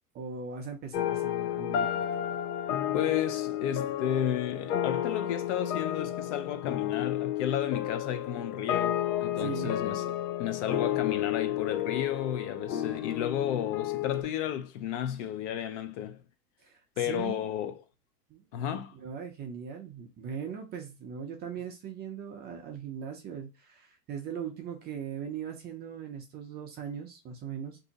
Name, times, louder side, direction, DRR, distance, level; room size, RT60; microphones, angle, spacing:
voice 1, 0.1-2.0 9.4-9.7 16.6-17.4 18.3-27.8, right 7 dB, 20° right, 0.5 m, -39 dB
sound 1, 0.9-14.2, left 11 dB, 85° left, 0.7 m, -31 dB
voice 2, 2.9-10.1 10.4-16.2 17.0-17.8 18.5-18.9, left 10 dB, 50° left, 0.5 m, -32 dB
2.7 x 2.6 x 3.8 m
hypercardioid pair, 125°, 47 cm